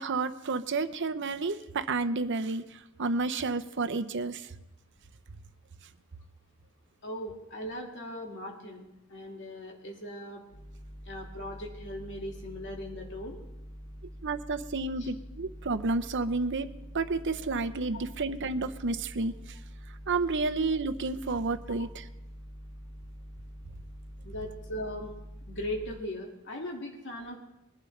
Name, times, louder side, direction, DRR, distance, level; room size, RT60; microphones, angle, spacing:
voice 1, 0.0-4.5 14.2-16.7 16.9-19.3 20.1-22.0, right 3 dB, 60° right, 9 dB, 0.7 m, -30 dB
voice 2, 7.0-10.4 11.1-13.4 15.0-15.1 24.2-25.1 25.5-27.4, left 1 dB, 60° left, 0 dB, 2.1 m, -39 dB
sound 1, 10.5-26.0, equal, 40° left, 2.3 m, -46 dB
22.0 x 11.5 x 3.3 m, 0.93 s
head